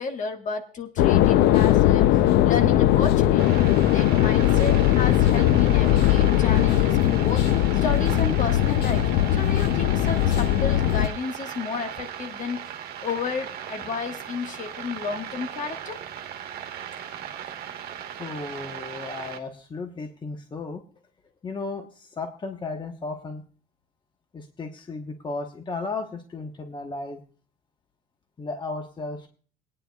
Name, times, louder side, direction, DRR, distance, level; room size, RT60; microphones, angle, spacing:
voice 1, 0.0-2.2 2.4-3.6 3.9-7.4 7.8-9.1 9.3-12.6 13.0-16.0, left 5 dB, 50° left, 5 dB, 1.6 m, -32 dB
sound 1, 1.0-11.1, left 13 dB, 85° left, 0.6 m, -19 dB
sound 2, 3.4-19.4, right 9 dB, 65° right, 1.3 m, -37 dB
voice 2, 18.2-20.8 21.4-23.4 24.3-27.2 28.4-29.3, left 3 dB, 25° left, 5 dB, 1.1 m, -34 dB
21.5 x 9.8 x 2.3 m, 0.40 s
cardioid pair, 110°, 17 cm